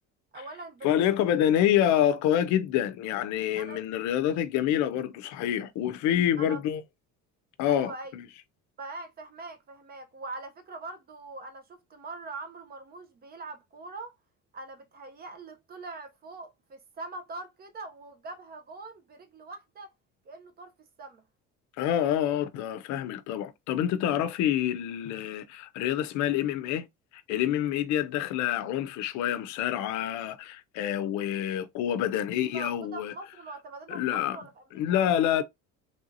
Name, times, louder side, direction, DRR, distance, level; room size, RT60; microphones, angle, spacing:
voice 1, 0.3-0.9 1.2-1.3 3.6-3.8 6.4-6.6 7.6-8.2 8.8-14.2 14.5-19.9 20.2-21.2 32.5-35.1, right 3 dB, 30° right, 0.6 m, -42 dB
voice 2, 0.8-6.8 7.6-8.3 21.8-26.9 27.1-33.1 33.9-34.4 34.8-35.4, left 10 dB, 70° left, 0.5 m, -27 dB
3.3 x 2.7 x 2.6 m
cardioid pair, 150°, 30 cm